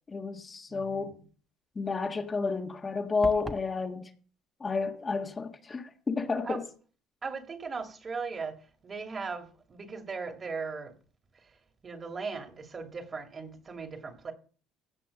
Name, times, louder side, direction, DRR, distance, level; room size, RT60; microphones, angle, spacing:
voice 1, 0.1-1.2 1.7-4.1 4.6-6.6, left 4 dB, 30° left, 1.6 m, -31 dB
voice 2, 0.7-1.2 6.4-6.6 7.2-10.9 11.8-14.3, right 4 dB, 35° right, 2.5 m, -38 dB
sound 1, 3.2-3.7, right 2 dB, 20° right, 1.3 m, -38 dB
16.0 x 5.9 x 6.6 m
supercardioid pair, 85°, 0 cm